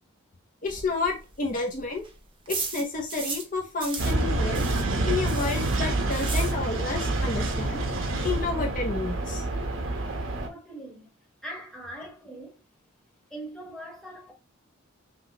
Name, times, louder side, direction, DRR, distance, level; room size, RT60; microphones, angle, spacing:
voice 1, 0.6-2.1 2.5-4.7 5.0-7.8 8.2-9.5, left 3 dB, 40° left, 0.8 m, -30 dB
sound 1, 0.7-3.5 3.8-7.0 7.3-7.4 7.7-7.8 8.0-8.4, right 4 dB, 25° right, 0.9 m, -37 dB
sound 2, 4.0-10.5, right 2 dB, 75° right, 1.0 m, -27 dB
voice 2, 10.4-11.1 11.4-12.6 13.3-14.3, right 1 dB, 5° left, 1.3 m, -41 dB
5.8 x 2.3 x 2.9 m
head